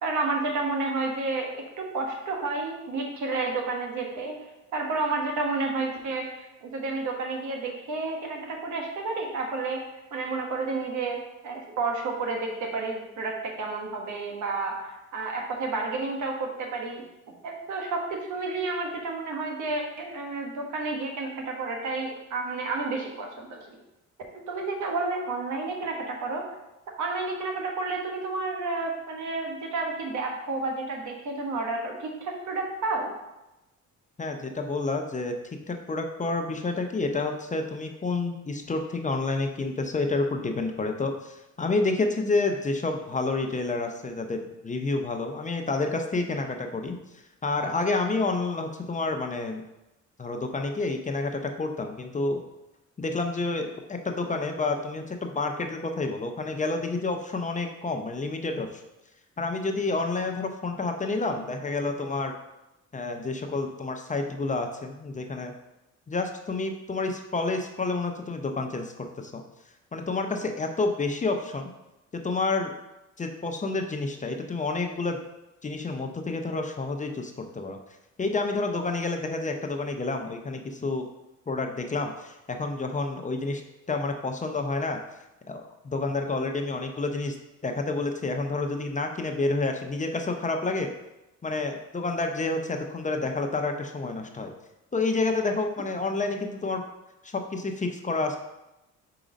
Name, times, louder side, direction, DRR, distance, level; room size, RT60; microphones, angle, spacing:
voice 1, 0.0-4.4 4.7-17.0 17.4-23.6 24.5-26.5 27.0-33.1, right 3 dB, 75° right, 1 dB, 1.3 m, -31 dB
voice 2, 34.2-35.4 35.7-47.0 47.4-49.6 50.2-52.4 53.0-58.7 59.4-62.3 62.9-65.5 66.1-69.4 69.9-71.7 72.1-72.7 73.2-75.2 75.6-77.8 78.2-81.0 81.5-83.6 83.9-85.0 85.5-87.3 87.6-90.9 91.4-94.5 94.9-96.8 97.2-98.4, left 3 dB, 25° left, 4 dB, 0.6 m, -29 dB
5.0 x 3.9 x 5.0 m, 0.95 s
cardioid pair, 90°, 30 cm